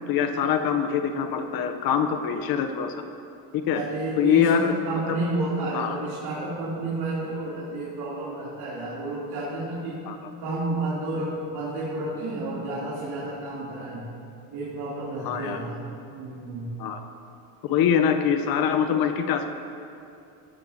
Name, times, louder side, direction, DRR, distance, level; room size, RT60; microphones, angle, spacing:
voice 1, 0.1-3.0 3.5-3.8 4.2-4.7 5.7-6.0 10.1-10.2 15.2-15.6 16.8-17.0 17.6-19.5, left 8 dB, 55° left, 7 dB, 0.9 m, -24 dB
voice 2, 3.7-10.0 10.4-14.1 14.5-16.7, right 2 dB, 60° right, -8 dB, 3.3 m, -31 dB
16.0 x 13.0 x 2.8 m, 2.7 s
supercardioid pair, 105°, 43 cm